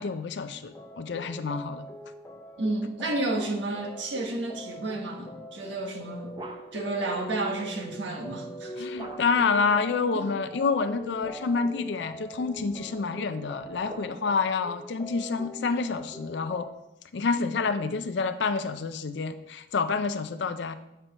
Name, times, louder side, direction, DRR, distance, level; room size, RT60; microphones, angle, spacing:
voice 1, 0.0-1.9 8.8-16.7 17.1-20.8, left 4 dB, 75° left, 10 dB, 0.4 m, -28 dB
sound 1, 0.7-16.7, equal, 15° left, 0.6 m, -42 dB
voice 2, 2.6-6.4 6.7-8.9 10.1-10.3, right 2 dB, 85° right, 1 dB, 1.4 m, -31 dB
sound 2, 5.8-7.0 9.0-9.6 10.9-11.8 12.5-14.5, right 1 dB, 25° right, 0.6 m, -46 dB
8.1 x 4.4 x 5.4 m, 0.88 s
head